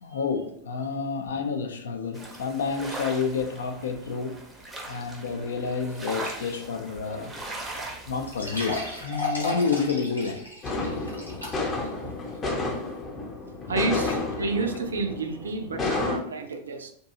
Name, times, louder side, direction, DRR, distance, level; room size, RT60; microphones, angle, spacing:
voice 1, 0.0-4.5 4.9-7.4 8.1-10.5, left 5 dB, 65° left, 0.4 m, -29 dB
sound 1, 2.1-9.1, right 2 dB, 10° right, 0.5 m, -39 dB
sound 2, 7.4-7.5 7.8-7.9 8.3-11.9 12.3-12.4 13.0-13.1, left 2 dB, 90° left, 0.9 m, -34 dB
sound 3, 10.6-16.2, left 3 dB, 25° left, 0.7 m, -31 dB
voice 2, 13.6-16.9, right 3 dB, 70° right, 0.4 m, -30 dB
2.6 x 2.2 x 2.7 m
figure-of-eight pair, 90°, 0 cm